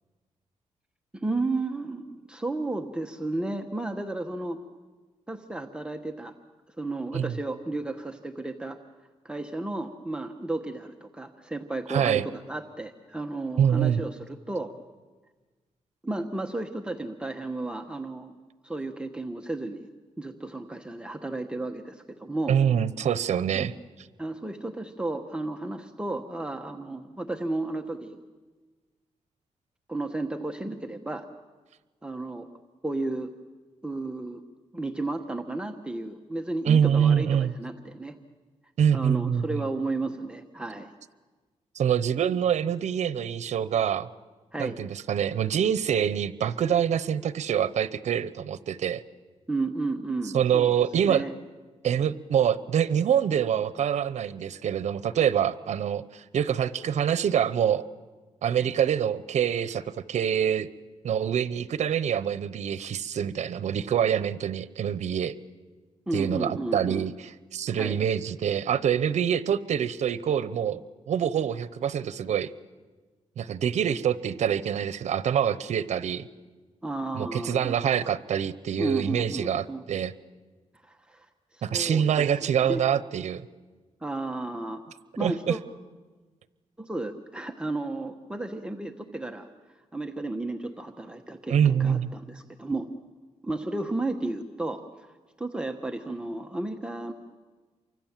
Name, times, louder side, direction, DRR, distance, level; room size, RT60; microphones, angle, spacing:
voice 1, 1.1-4.6 5.3-6.3 6.8-8.8 9.2-14.7 16.0-18.3 18.6-19.9 20.2-22.6 23.6-23.7 24.2-28.2 29.9-31.3 32.0-32.5 32.8-33.3 33.8-34.4 34.7-38.2 38.9-40.9 44.5-44.8 49.5-50.7 51.0-51.3 66.1-67.1 67.8-68.0 76.8-77.8 78.8-79.8 80.8-81.3 81.5-82.8 84.0-84.8 85.2-85.6 86.8-89.5 89.9-92.9 93.4-97.1, right 2 dB, 10° right, 3 dB, 1.2 m, -33 dB
voice 2, 11.9-12.3 13.6-14.0 22.5-23.7 36.7-37.5 38.8-39.7 41.7-44.1 44.6-49.0 50.3-51.2 51.8-57.8 58.4-60.7 61.0-65.3 66.1-70.8 71.1-72.5 73.4-76.3 77.1-80.1 81.6-83.5 85.2-85.6 91.5-92.1, right 8 dB, 80° right, 15 dB, 0.8 m, -25 dB
28.5 x 24.5 x 7.4 m, 1.3 s
cardioid pair, 105°, 12 cm